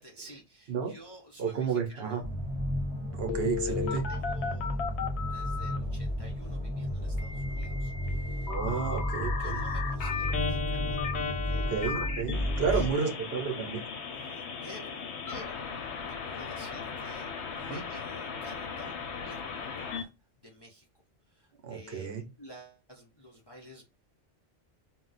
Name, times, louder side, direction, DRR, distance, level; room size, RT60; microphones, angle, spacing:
voice 1, 0.0-2.2 3.7-5.0 5.3-9.0 9.4-11.0 11.4-11.7 12.7-13.1 14.1-15.0 15.3-18.9 19.2-20.1 20.4-20.9 21.3-23.8, equal, 35° left, 0.4 m, -51 dB
voice 2, 1.4-2.2 3.2-4.1 8.5-9.6 11.7-13.8 17.7-17.8 21.6-22.2, right 6 dB, 65° right, 0.9 m, -31 dB
sound 1, 2.2-12.9, equal, 25° right, 0.9 m, -33 dB
Telephone, 3.3-5.8 7.2-20.0, left 6 dB, 85° left, 0.9 m, -36 dB
2.3 x 2.0 x 3.9 m
omnidirectional pair, 1.1 m